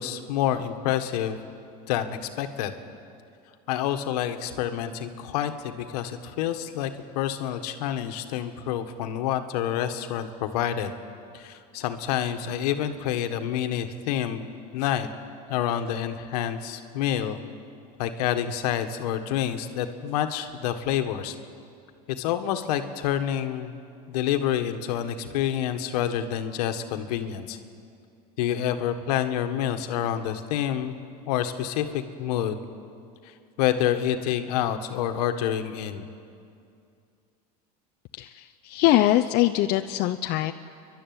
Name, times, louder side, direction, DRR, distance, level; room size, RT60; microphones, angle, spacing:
voice 1, 0.0-1.4 1.9-2.7 3.7-6.9 7.1-10.9 11.3-15.1 15.5-17.4 18.0-21.3 22.1-23.7 24.1-27.6 28.4-31.0 31.3-32.6 33.2-36.1, left 10 dB, 75° left, 7 dB, 1.6 m, -28 dB
voice 2, 38.1-40.5, left 14 dB, 50° left, 7 dB, 0.7 m, -23 dB
29.0 x 12.0 x 9.6 m, 2.4 s
supercardioid pair, 115°, 20 cm